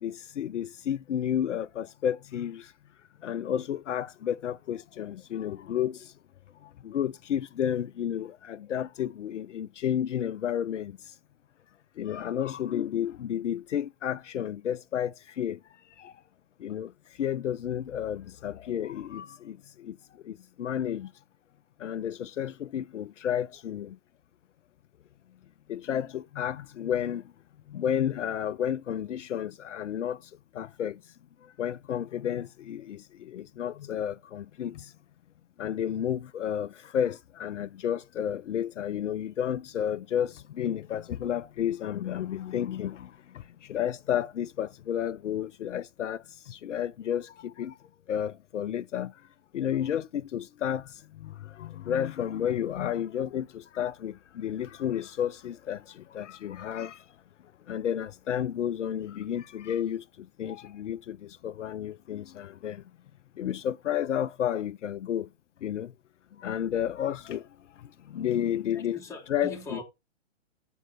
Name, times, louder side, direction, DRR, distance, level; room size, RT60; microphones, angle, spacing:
voice 1, 0.0-2.7 3.2-6.1 6.6-11.0 12.0-15.6 16.0-16.1 16.6-16.9 17.2-20.0 20.2-21.1 21.8-24.0 25.7-27.3 27.7-31.0 31.6-34.9 35.6-47.8 48.1-49.1 49.5-57.0 57.7-62.8 63.4-65.3 65.6-65.9 66.4-67.5 67.8-69.0 69.3-69.8, left 9 dB, 75° left, 0.6 m, -32 dB
voice 2, 68.7-69.8, left 3 dB, 10° left, 1.9 m, -40 dB
8.1 x 4.6 x 4.1 m
hypercardioid pair, 130°, 37 cm